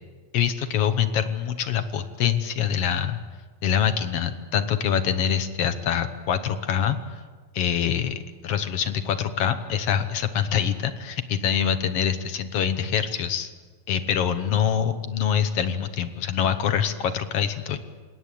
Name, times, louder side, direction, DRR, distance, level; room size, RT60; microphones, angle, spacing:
voice 1, 0.3-3.2 3.6-7.2 7.5-13.5 13.9-17.8, left 8 dB, 60° left, 10 dB, 1.9 m, -25 dB
28.5 x 17.0 x 8.5 m, 1.5 s
omnidirectional pair, 3.4 m